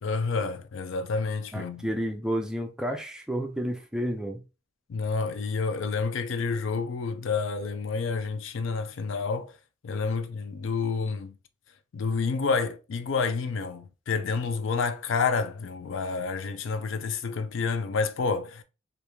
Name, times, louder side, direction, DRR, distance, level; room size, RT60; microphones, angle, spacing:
voice 1, 0.0-1.9 4.9-9.5 9.8-11.3 11.9-18.6, left 4 dB, 65° left, 0.4 m, -29 dB
voice 2, 1.5-4.4, equal, 5° right, 0.4 m, -31 dB
3.5 x 2.5 x 2.9 m
head